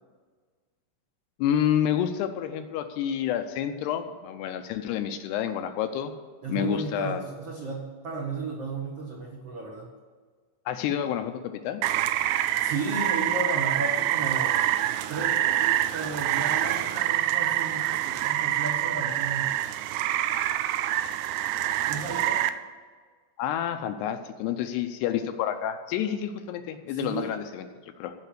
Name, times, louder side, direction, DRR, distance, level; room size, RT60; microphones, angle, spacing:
voice 1, 1.4-6.1 6.5-7.2 10.7-11.8 23.4-27.7 28.0-28.1, left 10 dB, 80° left, 7 dB, 2.7 m, -29 dB
voice 2, 6.4-9.9 12.6-14.6 15.1-19.5 21.9-22.5 26.9-27.4, right 3 dB, 70° right, -2 dB, 1.4 m, -34 dB
Rain, 11.8-22.5, right 13 dB, 85° right, 2.6 m, -26 dB
15.0 x 5.8 x 8.3 m, 1.5 s
omnidirectional pair, 5.0 m